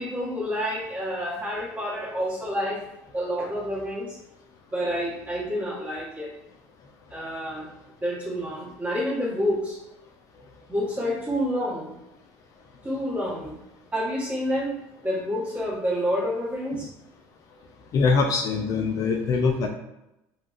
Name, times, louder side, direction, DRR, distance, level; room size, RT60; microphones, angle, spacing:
voice 1, 0.0-2.8 3.1-4.2 4.7-6.3 7.1-7.7 8.0-9.8 10.7-12.0 12.8-13.6 13.9-14.8 15.0-16.9, equal, 20° right, -6 dB, 1.2 m, -28 dB
voice 2, 17.9-19.7, left 4 dB, 45° left, 2 dB, 0.4 m, -23 dB
3.3 x 2.2 x 2.4 m, 0.90 s
supercardioid pair, 110°, 8 cm